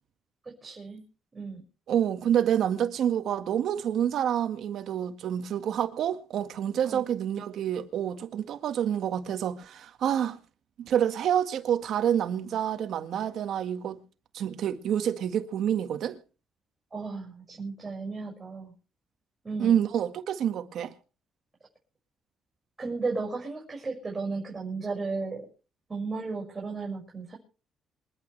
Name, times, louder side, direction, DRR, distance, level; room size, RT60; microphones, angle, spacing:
voice 1, 0.6-1.0 1.3-1.6 6.8-7.0 16.9-18.7 19.4-19.7 22.8-25.5 25.9-27.4, right 4 dB, 25° right, 6.3 m, -34 dB
voice 2, 1.9-10.4 10.8-14.0 14.3-16.2 19.6-20.9, right 9 dB, 70° right, 1.8 m, -28 dB
27.5 x 11.5 x 3.4 m
cardioid pair, 90°, 0 cm